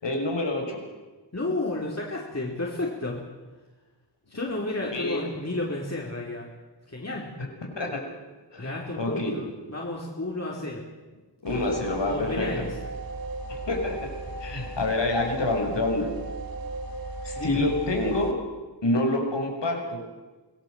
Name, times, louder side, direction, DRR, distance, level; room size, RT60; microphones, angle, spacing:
voice 1, 0.0-0.8 4.9-5.3 7.7-8.0 8.5-9.3 11.4-12.5 13.5-14.1 14.4-16.1 17.2-18.4 18.8-20.0, left 2 dB, 85° left, 2 dB, 6.1 m, -27 dB
voice 2, 1.3-3.2 4.3-6.5 6.9-7.3 8.6-10.8 11.5-11.6 12.0-12.8 17.4-17.6, left 2 dB, 40° left, -3 dB, 4.5 m, -32 dB
sound 1, 11.5-18.3, right 2 dB, 55° right, 2.7 m, -36 dB
26.0 x 18.5 x 8.0 m, 1.2 s
wide cardioid pair, 60°, 42 cm